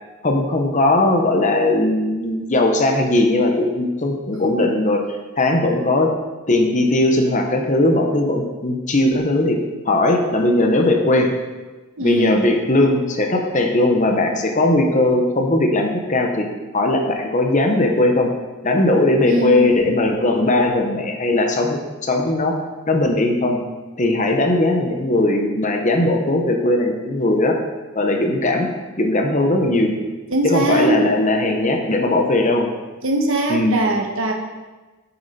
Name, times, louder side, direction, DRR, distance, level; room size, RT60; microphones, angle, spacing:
voice 1, 0.2-6.1 6.5-9.6 9.9-11.3 12.0-16.5 16.7-18.3 18.6-22.5 22.9-23.6 24.0-27.6 27.9-28.7 29.0-29.9 30.4-32.7 33.5-33.8, left 2 dB, 35° left, 3 dB, 1.0 m, -18 dB
voice 2, 12.0-12.5 19.3-19.7 30.3-31.1 33.0-34.3, right 2 dB, 65° right, 1 dB, 1.2 m, -21 dB
8.5 x 7.0 x 4.3 m, 1.2 s
head